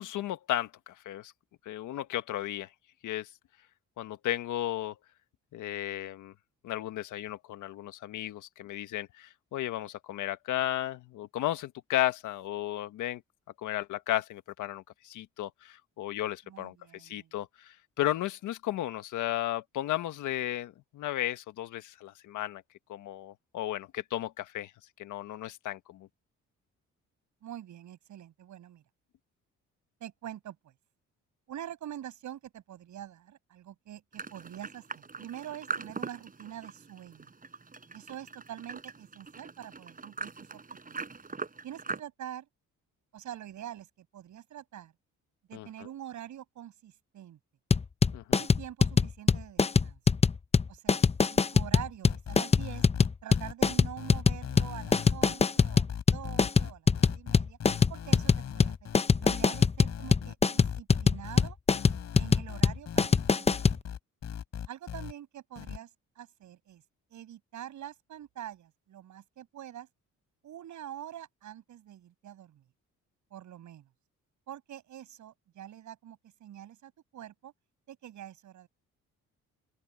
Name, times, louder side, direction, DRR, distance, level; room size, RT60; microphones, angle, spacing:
voice 1, 0.0-1.3 1.7-2.7 3.0-3.3 4.0-5.0 5.5-6.3 6.6-13.2 13.6-22.6 22.9-24.7 25.0-26.1 45.5-45.7 48.1-48.4, left 13 dB, 85° left, 1.6 m, -34 dB
voice 2, 16.5-17.4 27.4-28.8 30.0-30.7 31.5-37.3 37.9-40.6 40.9-41.0 41.6-42.5 43.1-44.9 45.5-47.4 48.4-50.0 50.7-51.0 51.3-52.9 53.2-57.6 57.9-61.6 62.2-63.8 64.7-65.9 66.2-66.8 67.1-69.9 70.4-72.6 73.3-73.9 74.5-77.5 77.9-78.7, right 11 dB, 75° right, 7.1 m, -45 dB
sound 1, 34.1-42.0, right 4 dB, 30° right, 6.9 m, -41 dB
sound 2, 47.7-63.8, left 5 dB, 20° left, 0.7 m, -23 dB
sound 3, 52.0-65.1 65.6-65.8, left 9 dB, 60° left, 7.8 m, -39 dB
open air
cardioid pair, 90°, 30 cm